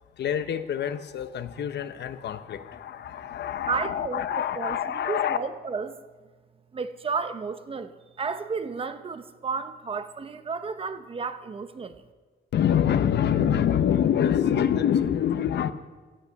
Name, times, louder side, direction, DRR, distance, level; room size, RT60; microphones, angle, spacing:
voice 1, 0.2-5.4 12.5-15.7, left 9 dB, 65° left, 12 dB, 0.9 m, -25 dB
voice 2, 3.7-6.0 6.7-12.1, right 5 dB, 30° right, 11 dB, 0.8 m, -32 dB
16.5 x 13.5 x 5.9 m, 1.4 s
wide cardioid pair, 165°, 19 cm